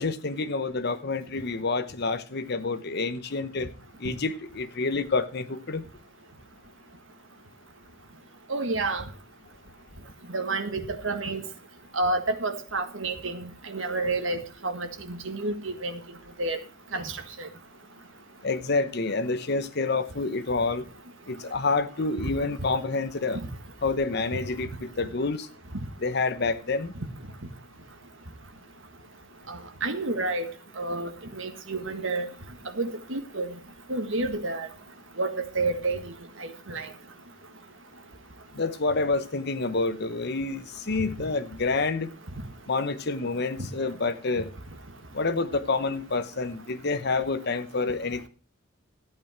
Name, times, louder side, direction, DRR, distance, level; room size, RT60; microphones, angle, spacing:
voice 1, 0.0-3.7 4.0-5.8 18.4-20.8 21.3-23.4 23.8-25.5 26.0-26.9 38.6-42.1 42.7-44.5 45.1-48.3, left 3 dB, 55° left, 1.0 m, -28 dB
voice 2, 8.5-9.0 10.3-11.4 11.9-16.0 16.4-16.6 16.9-17.0 29.5-30.5 30.8-31.1 31.4-32.3 32.8-33.5 33.9-34.7 35.2-36.0 36.7-36.9 43.6-43.7, right 2 dB, 75° right, 1.7 m, -29 dB
14.0 x 8.9 x 4.4 m
head